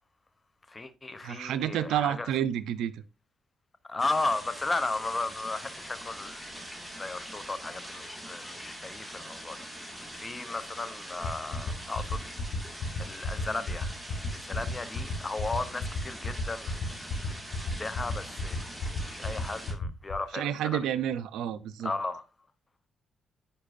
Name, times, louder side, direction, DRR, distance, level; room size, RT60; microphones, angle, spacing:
voice 1, 0.7-2.3 3.9-6.5 7.0-12.2 12.6-13.9 14.3-16.8 17.6-18.6 19.0-20.8 21.8-22.2, left 3 dB, 25° left, 0.8 m, -35 dB
voice 2, 1.2-3.0 20.3-21.9, right 10 dB, 85° right, 0.5 m, -30 dB
sound 1, 4.0-19.7, equal, 5° left, 1.9 m, -43 dB
sound 2, 11.2-20.1, left 4 dB, 65° left, 1.9 m, -32 dB
9.9 x 4.5 x 2.5 m
cardioid pair, 90°, 0 cm